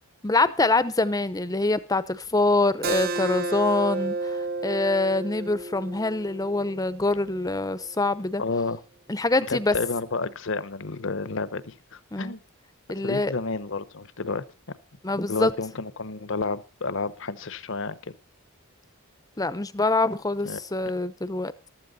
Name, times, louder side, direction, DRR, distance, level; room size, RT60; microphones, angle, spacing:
voice 1, 0.2-8.4 9.1-9.8 12.1-12.3 12.9-13.3 15.0-15.5 19.4-21.7, left 2 dB, 15° left, 0.7 m, -25 dB
Keyboard (musical), 2.8-8.0, right 3 dB, 45° right, 0.7 m, -32 dB
voice 2, 8.4-8.8 9.5-12.4 12.9-14.4 15.3-18.1 20.4-20.6, left 3 dB, 60° left, 1.0 m, -30 dB
14.5 x 13.0 x 4.1 m
head